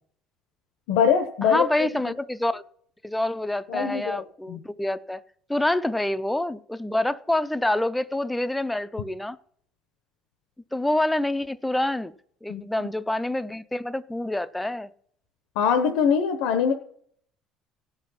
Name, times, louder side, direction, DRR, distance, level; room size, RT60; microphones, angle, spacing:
voice 1, 0.9-1.9 3.7-4.2 4.5-4.6 12.5-12.6 15.6-16.7, left 7 dB, 80° left, 6 dB, 0.9 m, -22 dB
voice 2, 1.4-2.6 3.0-5.2 5.5-9.4 10.7-12.1 12.4-14.9, left 1 dB, 5° left, 14 dB, 0.3 m, -27 dB
17.0 x 5.8 x 5.7 m, 0.64 s
cardioid pair, 175°, 0 cm